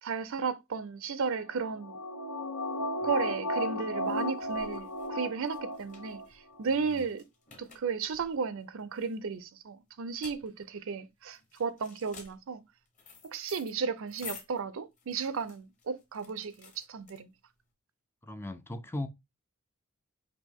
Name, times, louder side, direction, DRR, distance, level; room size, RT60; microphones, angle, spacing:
voice 1, 0.0-2.0 3.0-7.2 7.6-12.6 13.3-17.3, right 5 dB, 60° right, 0.5 m, -34 dB
sound 1, 1.5-6.2 6.6-6.7, left 1 dB, 80° left, 1.1 m, -35 dB
sound 2, 3.2-17.6, left 5 dB, 35° left, 1.3 m, -52 dB
voice 2, 18.2-19.1, left 1 dB, 10° left, 0.4 m, -37 dB
5.2 x 2.9 x 3.5 m
head